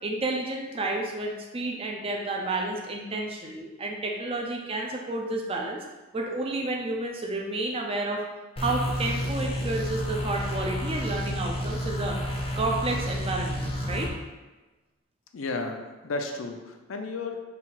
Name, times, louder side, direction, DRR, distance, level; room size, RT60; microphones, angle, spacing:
voice 1, 0.0-5.8 6.1-8.2 8.6-12.2 12.6-14.1, right 2 dB, 30° right, 1 dB, 0.5 m, -30 dB
sound 1, 8.6-14.1, equal, 30° left, 0.6 m, -30 dB
voice 2, 15.3-17.4, left 3 dB, 85° left, 4 dB, 0.5 m, -33 dB
4.0 x 2.4 x 4.2 m, 1.2 s
head